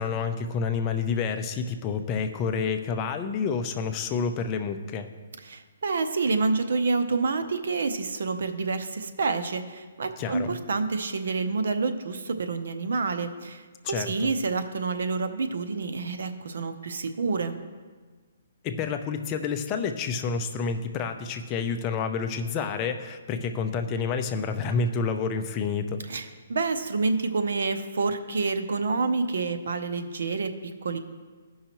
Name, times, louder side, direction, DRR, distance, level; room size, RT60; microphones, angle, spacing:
voice 1, 0.0-5.1 10.2-10.5 13.8-14.3 18.6-26.0, left 5 dB, 20° left, 6 dB, 0.5 m, -29 dB
voice 2, 5.4-17.5 26.1-31.0, right 4 dB, 70° right, 9 dB, 0.7 m, -28 dB
14.5 x 5.6 x 3.0 m, 1.5 s
hypercardioid pair, 160°, 0 cm